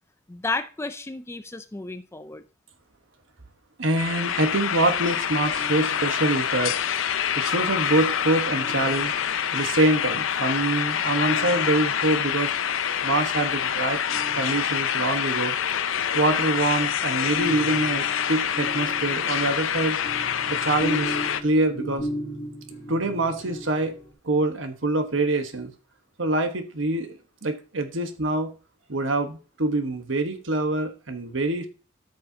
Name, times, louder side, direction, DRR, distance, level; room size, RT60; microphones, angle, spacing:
voice 1, 0.3-2.4, left 3 dB, 15° left, 0.4 m, -32 dB
voice 2, 3.8-6.7 7.4-9.1 9.5-12.5 13.0-14.0 14.3-15.5 16.1-20.0 20.5-21.2 21.4-22.1 22.9-24.0 24.2-25.7 26.2-28.5 28.9-31.7, right 2 dB, 70° right, 1.2 m, -25 dB
sound 1, 4.0-21.4, left 8 dB, 80° left, 0.6 m, -26 dB
sound 2, 5.5-6.6 8.5-9.6 11.2-12.3 14.1-15.1 16.8-24.1, right 1 dB, 45° left, 2.9 m, -37 dB
13.0 x 6.5 x 2.8 m
head